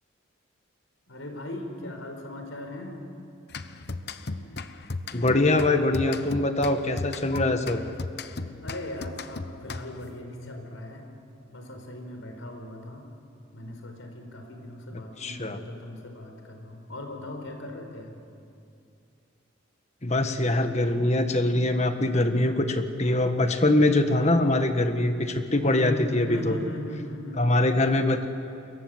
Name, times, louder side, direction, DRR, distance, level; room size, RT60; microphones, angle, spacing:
voice 1, 1.1-3.0 8.6-11.0 11.5-13.0 13.5-18.2 25.6-27.4, left 1 dB, 80° left, 4 dB, 4.7 m, -38 dB
sound 1, 3.5-10.2, left 3 dB, 55° left, 1.0 m, -36 dB
voice 2, 5.1-7.8 15.2-15.6 20.0-26.6 27.4-28.3, left 2 dB, 35° left, 7 dB, 1.5 m, -23 dB
29.0 x 22.5 x 8.0 m, 2.6 s
head